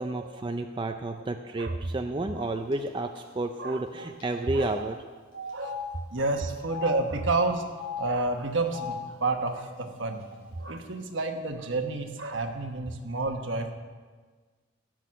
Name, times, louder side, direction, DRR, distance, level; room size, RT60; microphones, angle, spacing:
voice 1, 0.0-5.0, right 2 dB, 25° right, 5 dB, 0.4 m, -31 dB
Telephone, 2.7-2.9 3.2-3.3 4.2-4.3 4.6-4.7 5.5-5.8 6.6-6.9 7.7-8.0 8.6-8.9 9.7-9.8 10.1-10.8, left 9 dB, 65° left, 4.4 m, -38 dB
voice 2, 4.3-4.9 5.3-5.8 6.1-7.6 8.0-13.7, right 3 dB, 65° right, 5 dB, 1.2 m, -30 dB
16.5 x 6.3 x 6.3 m, 1.5 s
head